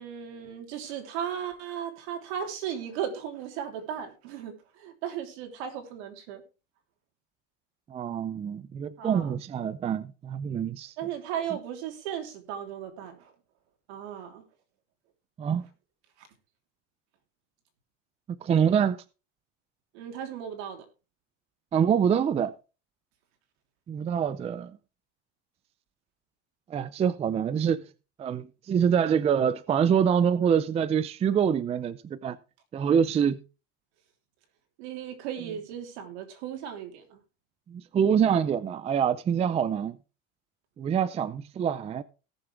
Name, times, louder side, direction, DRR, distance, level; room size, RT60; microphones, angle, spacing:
voice 1, 0.0-6.4 9.0-9.3 11.0-13.3 13.9-14.4 16.2-16.3 19.9-20.8 34.8-37.2, right 9 dB, 75° right, 3.3 m, -36 dB
voice 2, 7.9-10.9 15.4-15.6 18.3-19.0 21.7-22.5 23.9-24.7 26.7-27.9 28.2-32.4 32.7-33.4 37.7-40.0 40.8-42.0, right 8 dB, 20° right, 0.5 m, -25 dB
17.5 x 6.9 x 3.4 m
supercardioid pair, 140°, 33 cm